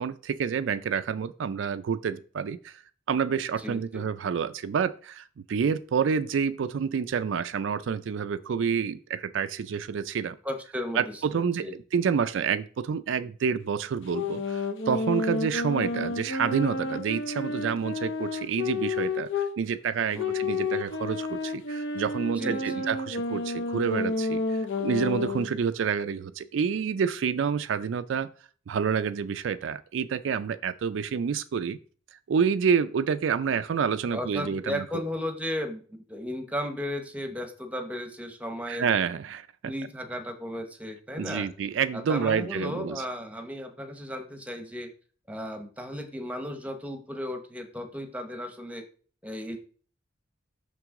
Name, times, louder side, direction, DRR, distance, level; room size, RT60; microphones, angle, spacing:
voice 1, 0.0-2.8 3.1-10.4 11.0-11.7 11.9-28.3 28.7-31.8 32.3-34.8 38.7-39.7 41.2-43.0, right 6 dB, 70° right, 12 dB, 0.4 m, -28 dB
voice 2, 3.6-4.0 10.4-11.8 20.1-20.4 22.4-22.8 34.1-38.9 39.6-41.5 41.9-44.9 45.3-48.8 49.2-49.6, left 1 dB, 5° right, 6 dB, 0.8 m, -35 dB
sound 1, 14.1-19.5 20.2-25.5, left 3 dB, 65° left, 0.8 m, -30 dB
6.0 x 6.0 x 3.6 m, 0.42 s
head